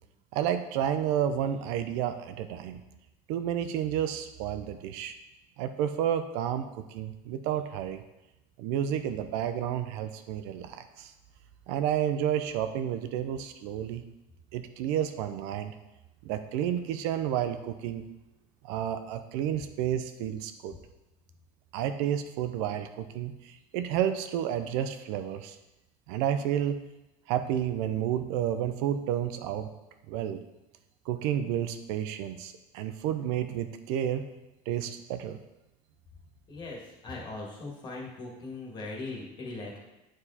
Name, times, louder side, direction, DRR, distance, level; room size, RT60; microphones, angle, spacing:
voice 1, 0.3-2.8 3.3-5.1 5.6-8.0 8.6-11.1 11.7-14.0 14.5-15.7 16.2-18.0 18.6-20.7 21.7-25.6 26.1-26.8 27.3-29.7 30.1-30.4 31.1-34.3 34.7-35.4, right 10 dB, 75° right, 9 dB, 0.6 m, -31 dB
voice 2, 36.5-39.8, left 3 dB, 25° left, -2 dB, 1.7 m, -39 dB
8.9 x 4.7 x 4.2 m, 0.96 s
cardioid pair, 165°, 16 cm